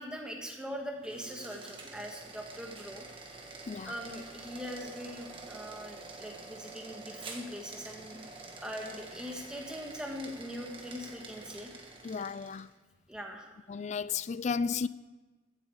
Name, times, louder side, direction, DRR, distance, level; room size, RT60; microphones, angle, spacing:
voice 1, 0.0-3.0 3.8-8.3 8.6-11.7 13.1-13.5, equal, 5° right, 1.6 m, -41 dB
sound 1, 0.9-12.7, right 3 dB, 25° right, 1.5 m, -47 dB
voice 2, 12.0-12.7 13.7-14.9, left 5 dB, 35° left, 0.3 m, -33 dB
15.5 x 8.3 x 4.9 m
head